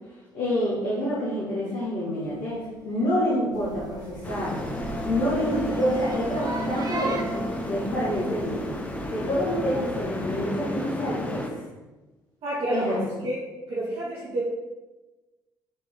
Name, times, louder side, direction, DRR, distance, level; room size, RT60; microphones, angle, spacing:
voice 1, 0.3-8.7 9.1-11.6 12.7-13.0, equal, 70° left, -10 dB, 2.1 m, -28 dB
sound 1, 2.1-2.7 4.7-9.4 9.6-10.4, right 2 dB, 40° left, 1.5 m, -36 dB
sound 2, 3.5-10.5, right 3 dB, 35° right, 0.9 m, -39 dB
sound 3, 4.2-11.5, left 1 dB, 15° left, 1.1 m, -33 dB
voice 2, 12.4-13.4 13.7-14.4, right 1 dB, 55° right, -10 dB, 2.1 m, -28 dB
7.3 x 4.7 x 3.8 m, 1.1 s
figure-of-eight pair, 45°, 11 cm